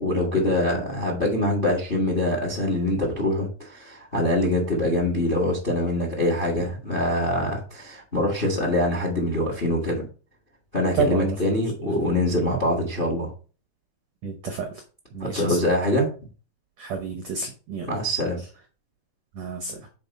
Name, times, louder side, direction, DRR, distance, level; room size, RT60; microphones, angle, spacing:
voice 1, 0.0-10.0 10.7-13.3 15.2-16.1 17.8-18.4, left 1 dB, 30° left, 2 dB, 1.0 m, -24 dB
voice 2, 10.9-11.4 11.8-11.9 14.2-14.8 15.1-15.6 16.8-17.9 19.3-19.8, right 5 dB, 80° right, 5 dB, 1.5 m, -29 dB
6.9 x 4.5 x 5.4 m, 0.36 s
omnidirectional pair, 4.5 m